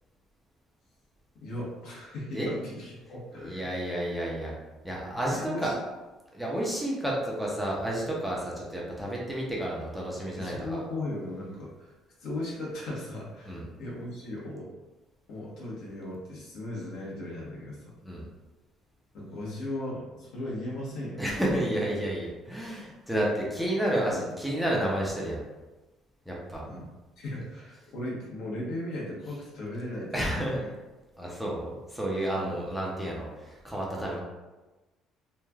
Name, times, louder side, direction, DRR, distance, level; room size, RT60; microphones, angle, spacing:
voice 1, 1.4-3.7 5.3-5.8 10.4-11.9 12.2-14.7 15.3-17.9 19.1-21.3 23.9-24.2 26.6-26.9 27.2-30.7 32.4-32.6, left 1 dB, 70° left, -5 dB, 1.0 m, -37 dB
voice 2, 3.4-4.5 4.8-5.7 6.3-10.8 13.5-13.6 18.0-18.3 21.2-25.4 26.3-26.6 30.1-30.6 31.2-34.2, right 1 dB, 5° right, -4 dB, 0.6 m, -31 dB
3.1 x 2.3 x 2.3 m, 1.1 s
cardioid pair, 125°, 0 cm